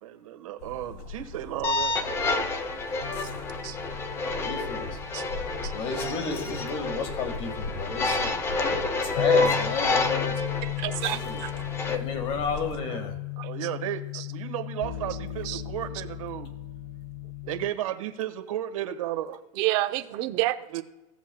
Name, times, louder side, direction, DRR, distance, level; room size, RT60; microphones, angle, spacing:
voice 1, 0.0-2.5 12.8-13.1 13.4-16.5 17.5-19.4 20.7-20.8, right 12 dB, 80° right, 6 dB, 1.4 m, -34 dB
sound 1, 0.6-12.8, left 3 dB, 50° left, 1.7 m, -40 dB
sound 2, 1.6-11.9, left 3 dB, 15° left, 0.6 m, -29 dB
sound 3, 3.0-17.7, left 16 dB, 90° left, 1.3 m, -38 dB
voice 2, 4.2-4.9 5.7-8.3 9.0-10.4 11.1-11.4 11.8-13.2, left 5 dB, 35° left, 6 dB, 1.7 m, -32 dB
voice 3, 10.6-11.5 13.4-13.5 14.1-14.3 15.4-15.6 19.6-20.6, right 17 dB, 40° right, 9 dB, 0.7 m, -29 dB
17.5 x 7.3 x 2.3 m, 1.0 s
supercardioid pair, 155°, 17 cm